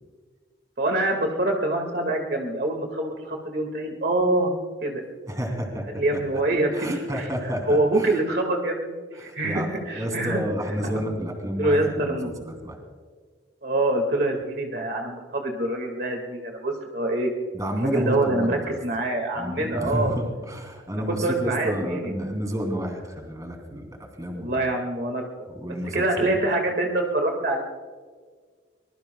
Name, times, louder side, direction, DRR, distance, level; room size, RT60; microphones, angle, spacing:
voice 1, 0.8-4.5 4.8-5.0 5.9-6.9 7.1-7.3 7.7-10.4 11.6-12.3 13.6-17.3 17.8-20.2 20.9-22.1 24.3-25.5 25.9-27.6, right 2 dB, 55° right, 2 dB, 1.9 m, -25 dB
voice 2, 5.3-5.8 6.1-6.2 6.7-8.1 9.2-9.7 9.9-12.8 17.5-18.8 19.3-23.9 24.2-24.6 25.5-26.4, equal, 20° right, 2 dB, 2.9 m, -30 dB
24.0 x 21.0 x 2.3 m, 1.5 s
head